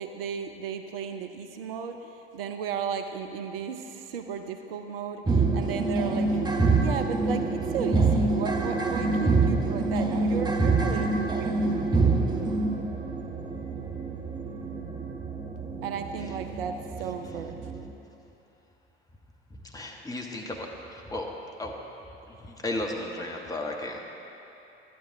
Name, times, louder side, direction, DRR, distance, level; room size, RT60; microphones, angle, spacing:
voice 1, 0.0-6.3 6.8-11.6 15.8-17.7, right 7 dB, 65° right, 7 dB, 0.6 m, -35 dB
sound 1, 5.3-17.9, right 3 dB, 15° right, 0.9 m, -26 dB
voice 2, 19.5-21.3 21.6-21.7 22.3-24.0, left 1 dB, 10° left, 0 dB, 1.3 m, -35 dB
12.0 x 9.3 x 4.7 m, 2.9 s
figure-of-eight pair, 65°, 31 cm